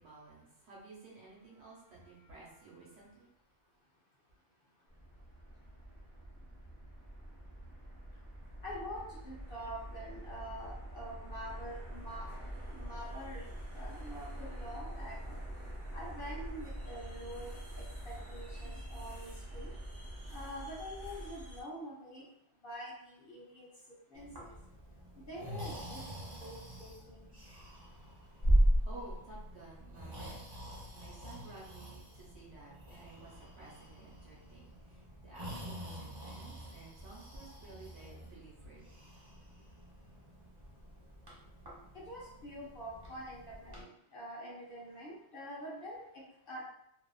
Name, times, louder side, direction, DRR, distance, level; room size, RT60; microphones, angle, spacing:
voice 1, 0.0-3.3 28.4-30.4 30.9-38.8, right 3 dB, 65° right, -5 dB, 1.1 m, -53 dB
sound 1, 4.9-21.6, right 1 dB, 15° right, 0.9 m, -45 dB
voice 2, 8.6-12.3 12.7-13.4 13.7-15.3 15.9-19.7 20.3-22.2 22.6-23.7 24.1-24.5 25.3-27.3 42.1-46.6, equal, 55° left, -5 dB, 0.8 m, -46 dB
Breathing, 24.1-43.8, right 1 dB, 30° right, 0.5 m, -38 dB
2.8 x 2.3 x 2.2 m, 0.76 s
omnidirectional pair, 1.3 m